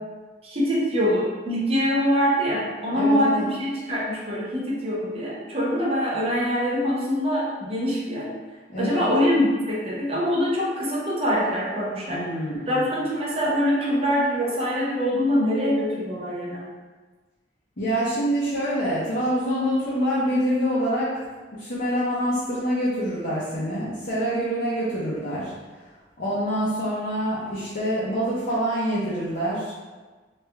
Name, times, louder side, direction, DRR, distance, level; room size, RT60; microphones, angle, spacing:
voice 1, 0.4-8.3 8.8-16.7, equal, 35° right, -5 dB, 0.8 m, -24 dB
voice 2, 2.9-3.4 8.7-9.1 12.1-12.8 17.8-21.1 21.5-25.5 26.2-29.7, equal, 55° left, -9 dB, 0.8 m, -26 dB
3.2 x 2.5 x 3.4 m, 1.3 s
head